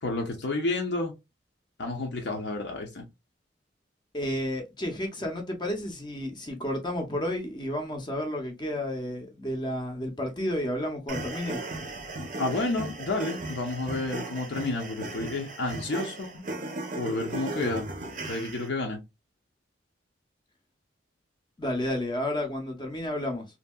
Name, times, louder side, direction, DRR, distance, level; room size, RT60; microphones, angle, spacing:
voice 1, 0.0-1.1 1.8-3.0 12.4-16.5 17.0-17.9 18.2-19.0, left 2 dB, 65° left, 0.6 m, -30 dB
voice 2, 4.1-11.6 21.6-23.4, left 1 dB, 25° left, 0.6 m, -31 dB
sound 1, 11.1-18.7, right 2 dB, 40° right, 0.6 m, -36 dB
2.8 x 2.7 x 2.2 m
head